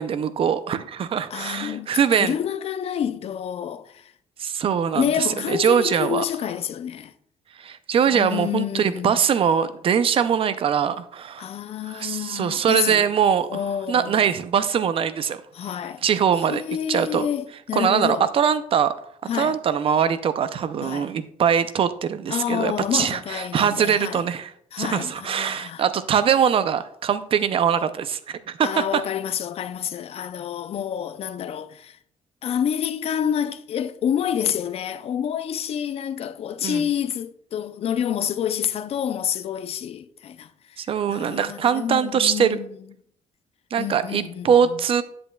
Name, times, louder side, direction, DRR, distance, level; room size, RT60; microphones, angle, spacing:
voice 1, 0.0-2.4 4.4-6.2 7.6-11.5 11.9-13.6 13.9-15.4 16.0-16.6 16.9-17.3 17.7-18.9 19.4-24.5 24.8-29.0 36.6-36.9 40.8-42.6 43.7-45.0, right 8 dB, 45° right, 0.5 m, -22 dB
voice 2, 1.3-4.1 4.9-7.1 8.1-9.2 11.4-13.1 13.5-14.4 15.5-16.1 16.5-18.3 19.3-19.6 20.8-21.1 22.3-24.2 24.7-25.8 28.6-32.0 32.4-40.8 41.1-42.7 43.8-44.8, left 9 dB, 50° left, 0.4 m, -28 dB
8.1 x 7.7 x 2.3 m
cardioid pair, 140°, 14 cm